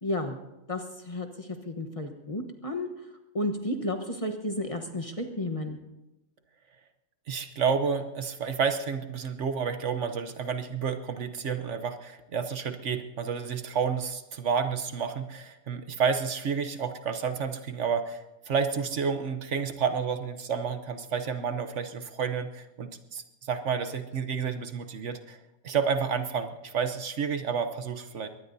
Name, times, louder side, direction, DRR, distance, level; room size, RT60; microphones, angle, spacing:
voice 1, 0.0-0.4 0.7-2.9 3.3-5.8, left 1 dB, 25° left, 5 dB, 1.1 m, -32 dB
voice 2, 7.3-25.4 25.6-28.3, right 6 dB, 60° right, 9 dB, 1.1 m, -30 dB
22.5 x 19.0 x 2.7 m, 0.99 s
omnidirectional pair, 1.4 m